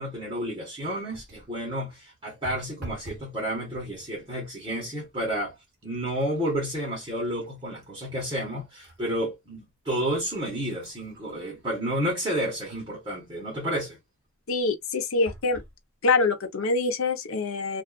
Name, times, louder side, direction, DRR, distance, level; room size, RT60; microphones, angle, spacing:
voice 1, 0.0-5.6 5.8-14.0, equal, 20° right, 1.0 m, -31 dB
sound 1, 1.1-1.6 2.4-3.3 3.7-4.2 4.9-5.1 5.5-9.0 9.5-9.6 10.3-13.0 15.3-15.8 16.5-16.6 16.8-16.9, right 2 dB, 50° right, 0.9 m, -47 dB
voice 2, 14.5-15.6 16.0-17.8, left 3 dB, 70° left, 0.7 m, -25 dB
2.4 x 2.4 x 2.3 m
head